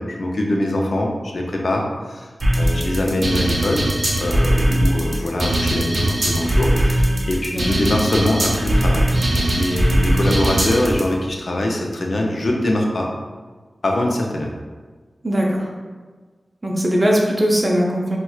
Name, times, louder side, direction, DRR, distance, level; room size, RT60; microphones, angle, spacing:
voice 1, 0.0-2.3 2.6-3.8 4.2-13.1 13.8-14.5, left 1 dB, 70° left, 0 dB, 0.5 m, -23 dB
sound 1, 2.4-11.0, right 1 dB, 60° right, 0.7 m, -19 dB
voice 2, 15.2-15.7 16.6-18.2, equal, 25° right, -2 dB, 0.6 m, -19 dB
4.2 x 2.2 x 2.3 m, 1.4 s
wide cardioid pair, 65°, 0 cm